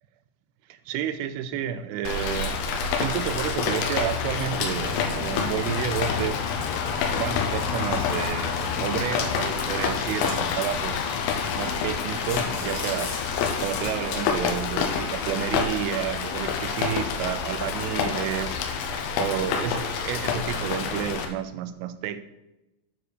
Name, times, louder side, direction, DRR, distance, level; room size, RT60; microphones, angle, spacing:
voice 1, 0.7-6.5 7.2-11.1 11.6-13.2 13.6-18.6 19.2-22.2, right 10 dB, 85° right, 11 dB, 3.1 m, -31 dB
Rain, 2.1-21.3, left 6 dB, 85° left, 3.6 m, -28 dB
sound 1, 9.9-10.8 11.3-11.4 11.7-11.8 12.1-14.3, left 3 dB, 65° left, 3.8 m, -38 dB
9.7 x 4.8 x 6.8 m, 0.94 s
omnidirectional pair, 5.6 m